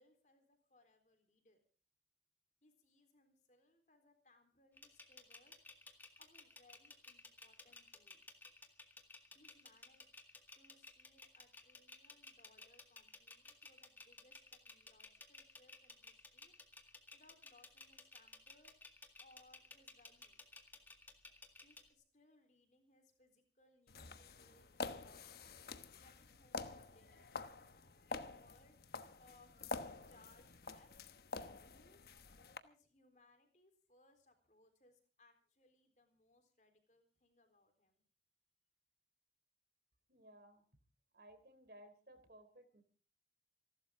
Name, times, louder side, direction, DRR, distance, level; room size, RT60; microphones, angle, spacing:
voice 1, 0.0-1.6 2.6-5.6 6.2-8.2 9.3-16.5 17.1-20.6 21.6-27.3 28.1-30.9 31.3-32.1 32.6-38.0, left 2 dB, 45° left, 6 dB, 3.8 m, -70 dB
sound 1, 4.8-21.9, left 3 dB, 10° left, 1.9 m, -57 dB
sound 2, 23.9-32.6, left 3 dB, 60° left, 1.1 m, -48 dB
voice 2, 40.1-40.6 41.1-42.8, right 1 dB, 55° right, 9 dB, 3.4 m, -60 dB
28.0 x 12.5 x 3.7 m, 0.40 s
head